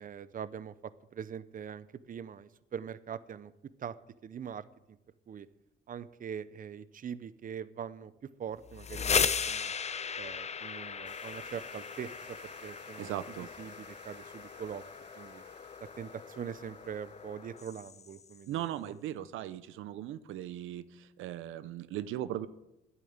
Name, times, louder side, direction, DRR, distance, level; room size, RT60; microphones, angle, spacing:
voice 1, 0.0-3.5 3.8-3.9 4.2-4.7 5.3-5.5 5.9-8.1 8.4-9.7 10.2-13.1 13.6-14.8 15.2-15.4 16.0-18.9, right 8 dB, 45° right, 16 dB, 0.7 m, -42 dB
sound 1, 8.6-18.4, left 6 dB, 35° left, 0.7 m, -37 dB
sound 2, 11.0-17.8, right 8 dB, 60° right, 1.2 m, -60 dB
voice 2, 13.0-13.5 18.5-22.5, right 12 dB, 90° right, 14 dB, 0.7 m, -38 dB
10.5 x 9.0 x 8.8 m, 0.91 s
cardioid pair, 90°, 20 cm